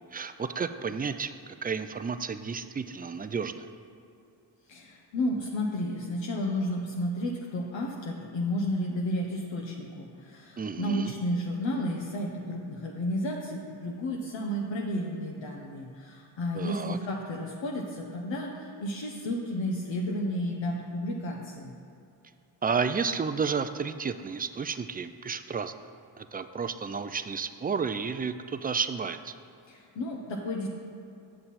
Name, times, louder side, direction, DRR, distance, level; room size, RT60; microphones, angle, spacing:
voice 1, 0.1-1.3 1.6-3.7 10.6-11.1 16.6-17.0 22.6-25.7 26.2-29.3, right 5 dB, 20° right, 10 dB, 0.3 m, -31 dB
voice 2, 4.7-21.7 29.7-30.7, left 1 dB, 70° left, -1 dB, 1.0 m, -32 dB
7.5 x 6.8 x 4.2 m, 2.5 s
cardioid pair, 55°, 47 cm